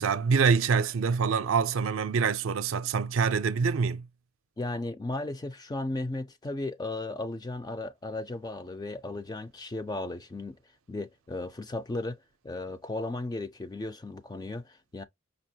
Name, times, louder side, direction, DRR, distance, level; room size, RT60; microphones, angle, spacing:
voice 1, 0.0-4.0, right 5 dB, 75° right, 0.5 m, -25 dB
voice 2, 4.6-10.6 10.9-15.0, left 2 dB, 20° left, 0.4 m, -35 dB
5.1 x 2.1 x 2.7 m
head